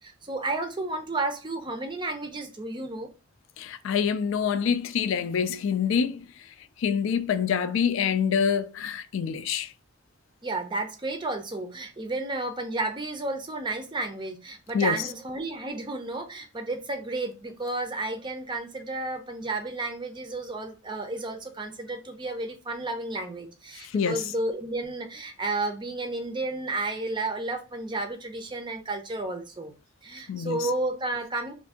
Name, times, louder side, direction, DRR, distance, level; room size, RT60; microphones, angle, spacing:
voice 1, 0.0-3.1 10.4-29.7 30.0-31.5, right 2 dB, 20° right, 0.5 m, -32 dB
voice 2, 3.6-6.2 6.8-9.7 14.7-15.0 23.9-24.2 30.3-30.6, left 7 dB, 65° left, 0.3 m, -26 dB
2.6 x 2.5 x 3.5 m
head